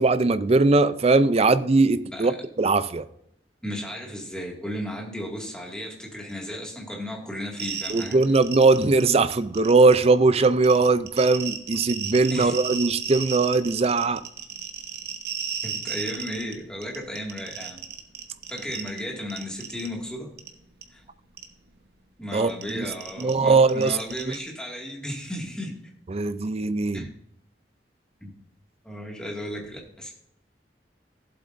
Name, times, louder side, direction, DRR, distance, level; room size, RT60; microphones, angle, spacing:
voice 1, 0.0-2.3 2.6-3.1 7.9-14.2 22.3-22.8 23.2-24.0 26.1-27.1, right 3 dB, 35° right, 13 dB, 0.5 m, -20 dB
voice 2, 3.6-8.2 12.3-12.6 15.6-17.8 18.5-20.3 20.9-21.0 22.2-25.7 26.9-27.1 28.2-28.3 28.8-30.1, equal, 5° left, -1 dB, 2.2 m, -34 dB
sound 1, 7.6-9.0 9.3-10.0 10.4-16.5 16.8-19.0 19.3-19.9 20.4-20.5 20.8-20.9 21.4-21.5 22.5-24.4, right 8 dB, 60° right, 1.1 m, -33 dB
15.0 x 7.8 x 2.6 m, 0.75 s
head